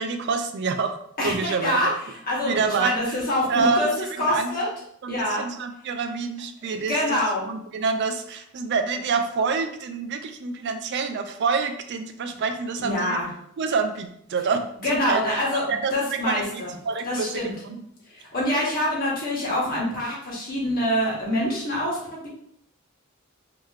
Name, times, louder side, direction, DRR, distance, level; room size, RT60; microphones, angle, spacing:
voice 1, 0.0-1.8 2.4-3.2 3.5-3.9 4.2-4.5 5.0-13.2 13.6-17.3 17.7-17.9, right 4 dB, 55° right, 7 dB, 0.4 m, -27 dB
voice 2, 1.2-1.9 2.3-3.9 4.2-4.7 5.1-5.4 6.9-7.4 12.8-13.3 14.8-15.6 15.9-16.7 17.0-17.5 18.1-22.3, left 1 dB, 45° left, -5 dB, 1.5 m, -25 dB
3.8 x 2.8 x 3.2 m, 0.70 s
head